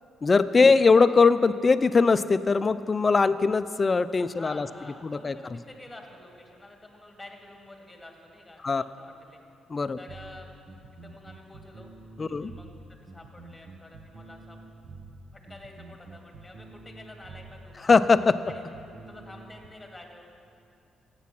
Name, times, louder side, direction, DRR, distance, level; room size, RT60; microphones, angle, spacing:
voice 1, 0.2-4.7 5.0-5.3 8.6-8.8 9.7-10.0 12.2-12.5 17.8-18.4, left 4 dB, 30° left, 14 dB, 0.4 m, -21 dB
voice 2, 4.2-9.4 10.0-10.5 11.0-11.9 12.3-14.6 15.3-17.7 18.4-20.2, left 2 dB, 10° left, 2 dB, 2.1 m, -48 dB
sound 1, 10.1-19.7, right 3 dB, 55° right, 0.9 m, -47 dB
14.5 x 8.5 x 6.0 m, 2.6 s
cardioid pair, 90°, 0 cm